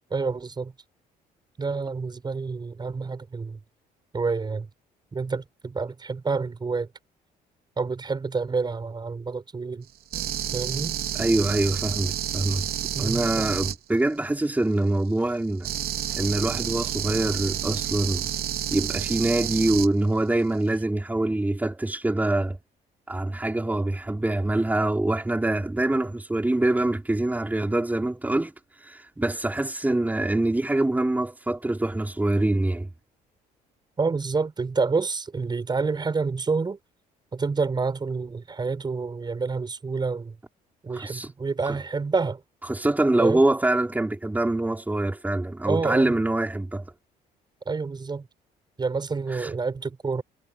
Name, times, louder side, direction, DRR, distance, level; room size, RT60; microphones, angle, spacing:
voice 1, 0.1-0.7 1.6-3.6 4.1-4.7 5.1-6.9 7.8-9.9 10.5-11.0 12.9-13.3 34.0-36.8 37.3-40.4 40.8-42.4 43.2-43.4 45.7-46.2 47.7-48.3 48.8-50.2, right 4 dB, 25° right, 5.8 m, -28 dB
sound 1, 10.1-13.8 15.6-19.9, right 10 dB, 65° right, 3.8 m, -30 dB
voice 2, 11.2-12.6 13.0-15.7 16.2-18.3 18.7-22.6 23.1-28.5 28.8-32.9 40.9-41.3 42.7-46.9 49.3-49.5, right 2 dB, 10° right, 4.7 m, -24 dB
cardioid pair, 110°, 17 cm